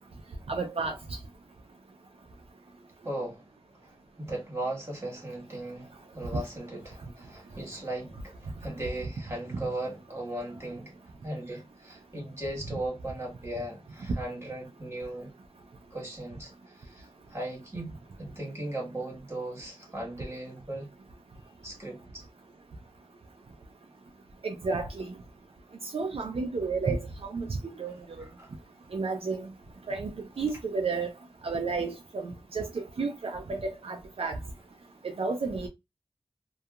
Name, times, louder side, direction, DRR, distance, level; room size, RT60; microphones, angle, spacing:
voice 1, 0.5-0.9 24.4-25.1 25.9-28.3 28.9-29.5 29.9-30.1 30.4-31.1 31.4-34.4 35.0-35.7, right 4 dB, 70° right, 0.4 m, -32 dB
voice 2, 3.0-3.5 4.2-10.9 11.2-15.3 15.9-16.5 16.8-17.0 17.3-17.9 18.2-20.9 21.6-22.2 28.2-28.5, right 1 dB, 25° right, 1.5 m, -37 dB
2.7 x 2.3 x 2.3 m
wide cardioid pair, 65°, 10 cm